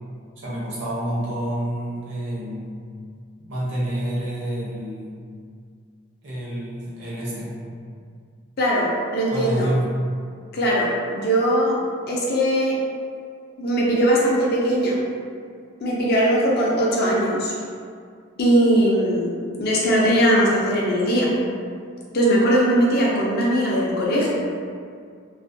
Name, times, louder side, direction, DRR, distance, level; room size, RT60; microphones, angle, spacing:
voice 1, 0.4-2.9 3.5-5.1 6.2-7.5 9.3-9.8, right 1 dB, 65° right, -7 dB, 0.7 m, -28 dB
voice 2, 8.6-9.7 10.5-11.8 12.1-12.8 13.6-15.0 15.8-17.5 18.4-21.3 22.1-24.3, right 1 dB, 50° left, -5 dB, 0.4 m, -20 dB
2.4 x 2.1 x 2.6 m, 2.2 s
head